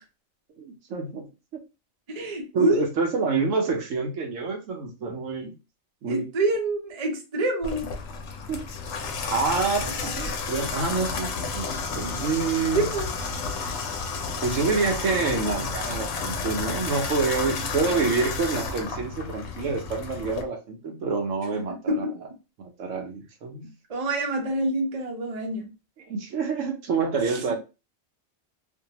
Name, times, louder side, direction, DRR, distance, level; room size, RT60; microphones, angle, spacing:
voice 1, 0.6-1.3 2.5-5.5 6.0-6.3 8.5-8.7 9.3-12.9 14.4-22.0 22.6-23.7 26.1-27.6, right 4 dB, 70° right, 3 dB, 0.9 m, -27 dB
voice 2, 2.1-2.9 6.1-7.9 12.7-13.1 17.6-18.1 21.9-22.1 23.9-25.7 27.3-27.4, right 1 dB, 40° right, 1 dB, 0.6 m, -26 dB
Water tap faucet / Bathtub (filling or washing), 7.6-20.4, left 4 dB, 80° left, 0.9 m, -31 dB
2.6 x 2.2 x 2.8 m, 0.28 s
omnidirectional pair, 1.4 m